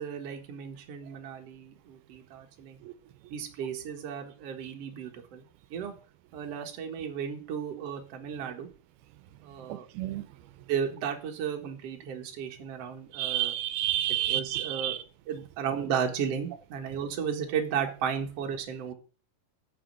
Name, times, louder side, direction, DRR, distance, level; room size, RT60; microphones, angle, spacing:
voice 1, 0.0-2.8 3.3-5.5 5.7-5.9 6.3-8.7 9.4-9.9 10.7-13.5 14.3-15.0 15.3-18.9, right 7 dB, 50° right, 2.2 m, -34 dB
voice 2, 13.1-15.0, right 13 dB, 85° right, 2.6 m, -29 dB
8.9 x 6.5 x 7.6 m
omnidirectional pair, 4.4 m